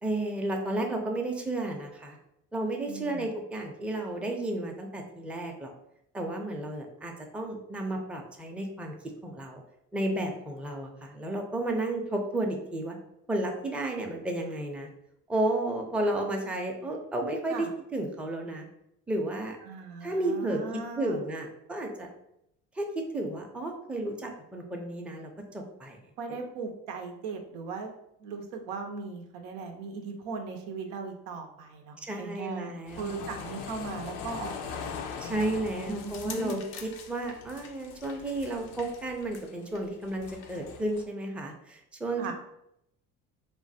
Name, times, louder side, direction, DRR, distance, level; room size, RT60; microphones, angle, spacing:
voice 1, 0.0-2.2 2.5-5.7 6.1-8.9 9.2-9.6 9.9-13.0 13.3-14.9 15.3-17.7 17.9-18.7 19.1-19.6 20.0-20.6 21.0-22.1 22.8-22.9 23.1-26.0 32.0-33.2 35.2-42.3, right 1 dB, 5° right, 1 dB, 0.4 m, -32 dB
voice 2, 2.9-3.3 17.5-17.7 19.6-21.2 26.2-27.9 28.2-34.9 35.9-36.6 42.2-42.3, right 4 dB, 85° right, 4 dB, 0.6 m, -38 dB
sound 1, 32.9-41.0, left 6 dB, 85° left, 0.5 m, -41 dB
3.1 x 2.2 x 2.6 m, 0.79 s
supercardioid pair, 75°, 38 cm